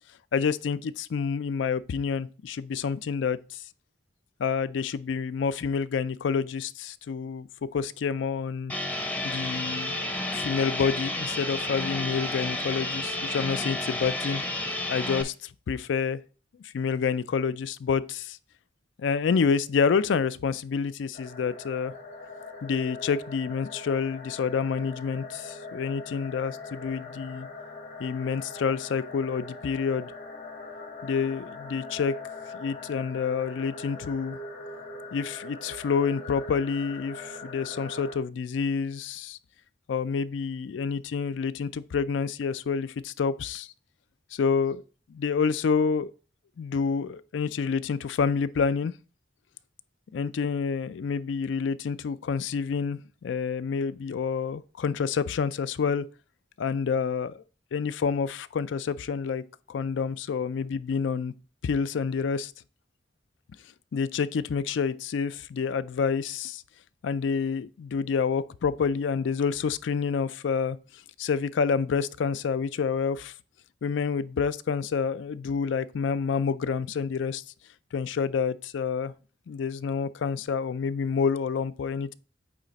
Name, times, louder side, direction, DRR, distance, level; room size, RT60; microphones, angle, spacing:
voice 1, 0.3-3.6 4.4-7.5 7.7-8.7 9.2-10.0 10.3-14.4 14.9-16.2 16.7-18.4 19.0-21.9 22.6-27.5 28.0-30.1 31.0-32.1 32.5-34.4 35.1-39.4 39.9-43.7 44.3-44.8 45.1-46.1 46.6-48.9 50.1-56.0 56.6-57.4 57.7-59.4 59.7-61.3 61.6-62.5 63.9-66.6 67.0-70.8 71.2-73.3 73.8-77.4 77.9-79.1 79.5-82.1, left 6 dB, 75° left, 0.4 m, -28 dB
sound 1, 8.7-15.2, left 1 dB, 10° left, 0.6 m, -31 dB
sound 2, 21.1-38.2, left 3 dB, 50° left, 1.3 m, -41 dB
8.7 x 3.3 x 4.0 m
head